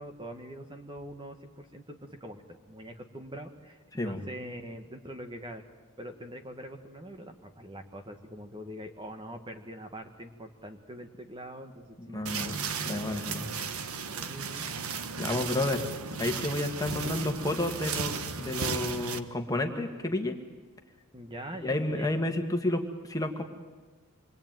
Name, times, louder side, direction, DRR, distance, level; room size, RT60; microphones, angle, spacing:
voice 1, 0.0-5.6 6.0-12.6 14.2-14.6 21.1-22.2, equal, 20° right, 5 dB, 1.7 m, -43 dB
voice 2, 12.0-13.5 15.2-15.8 16.2-20.4 21.6-23.4, left 1 dB, 15° left, 4 dB, 2.0 m, -31 dB
sound 1, 12.3-19.2, right 5 dB, 70° right, 1.4 m, -35 dB
27.5 x 23.0 x 9.2 m, 1.3 s
head